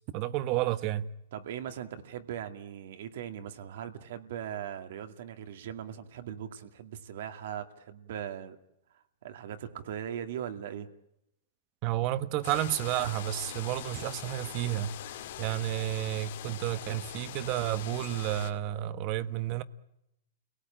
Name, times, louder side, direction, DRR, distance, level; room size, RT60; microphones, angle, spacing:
voice 1, 0.1-1.1 11.8-14.9 15.4-19.6, right 13 dB, 35° right, 1.2 m, -31 dB
voice 2, 1.3-8.6 9.2-10.9, right 9 dB, 65° right, 2.3 m, -39 dB
sound 1, 12.4-18.5, left 11 dB, 60° left, 2.4 m, -42 dB
30.0 x 18.0 x 8.8 m
hypercardioid pair, 150°, 0 cm